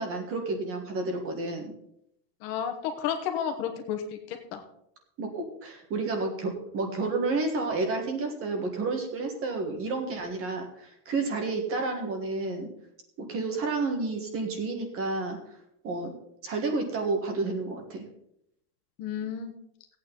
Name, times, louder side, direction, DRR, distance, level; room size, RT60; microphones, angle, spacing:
voice 1, 0.0-1.7 5.2-12.7 13.2-15.4 15.8-16.1 16.4-18.0, right 3 dB, 30° right, 4 dB, 1.6 m, -30 dB
voice 2, 2.4-4.0 4.3-4.6 19.0-19.5, left 8 dB, 45° left, 6 dB, 1.4 m, -31 dB
15.5 x 8.8 x 3.9 m, 0.75 s
supercardioid pair, 175°, 47 cm